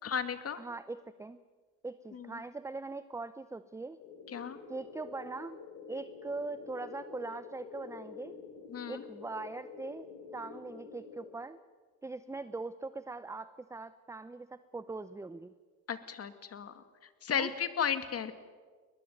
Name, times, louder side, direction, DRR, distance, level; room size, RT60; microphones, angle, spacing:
voice 1, 0.0-0.6 2.1-2.4 4.3-4.6 8.7-9.0 15.9-16.8 17.2-18.3, left 7 dB, 40° left, 10 dB, 2.3 m, -34 dB
voice 2, 0.6-1.4 1.8-4.0 4.7-5.6 5.9-8.4 8.9-10.1 10.3-11.6 12.0-15.5 17.3-17.5, right 3 dB, 10° right, 13 dB, 0.7 m, -41 dB
sound 1, 4.0-11.3, left 5 dB, 85° left, 4.4 m, -48 dB
21.5 x 21.0 x 9.5 m, 1.5 s
cardioid pair, 100°, 36 cm